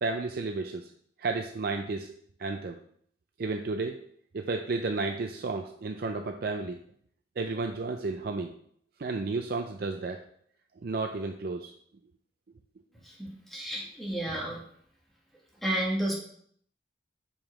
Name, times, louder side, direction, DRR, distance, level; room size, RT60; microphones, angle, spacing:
voice 1, 0.0-0.9 1.2-2.1 2.4-2.8 3.4-4.0 4.3-6.8 7.4-8.5 9.0-10.2 10.8-11.7, right 3 dB, 55° right, 5 dB, 0.4 m, -32 dB
voice 2, 13.0-14.6 15.6-16.2, right 1 dB, ahead, -3 dB, 1.5 m, -31 dB
5.6 x 5.0 x 4.8 m, 0.64 s
head